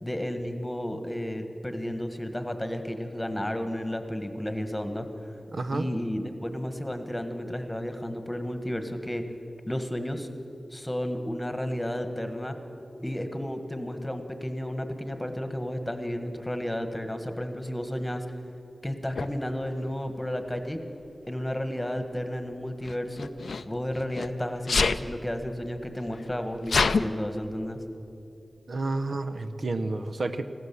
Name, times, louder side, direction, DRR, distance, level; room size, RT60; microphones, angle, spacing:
voice 1, 0.0-5.1 5.7-9.2 9.7-10.3 10.7-12.6 13.0-18.2 18.8-20.8 21.3-23.3 23.6-27.8, equal, 10° left, 7 dB, 1.4 m, -32 dB
voice 2, 5.5-5.9 28.7-30.4, right 2 dB, 70° right, 9 dB, 0.7 m, -30 dB
Sneeze, 19.2-19.3 20.4-20.8 22.8-24.3 24.7-25.0 25.8-25.9 26.1-27.0, left 4 dB, 85° left, 0.4 m, -26 dB
16.0 x 13.0 x 7.0 m, 2.6 s
wide cardioid pair, 65°, 0 cm